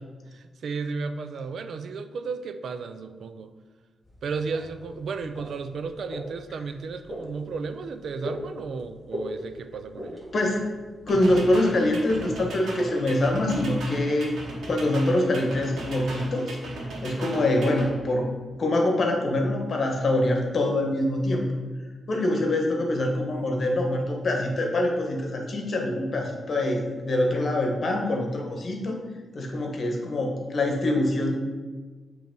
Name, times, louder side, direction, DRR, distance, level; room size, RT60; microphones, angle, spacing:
voice 1, 0.3-3.5 4.2-10.2 17.3-17.5, right 4 dB, 65° right, 10 dB, 0.4 m, -34 dB
sound 1, 4.0-12.3, equal, 5° right, 1.8 m, -41 dB
voice 2, 10.3-10.6 11.1-14.3 14.7-16.6 17.0-18.3 18.6-21.5 22.1-29.0 29.3-31.4, left 1 dB, 45° left, 1 dB, 1.2 m, -24 dB
sound 2, 11.1-17.9, right 1 dB, 80° right, 1.6 m, -37 dB
7.8 x 3.2 x 5.2 m, 1.4 s
wide cardioid pair, 135°, 0 cm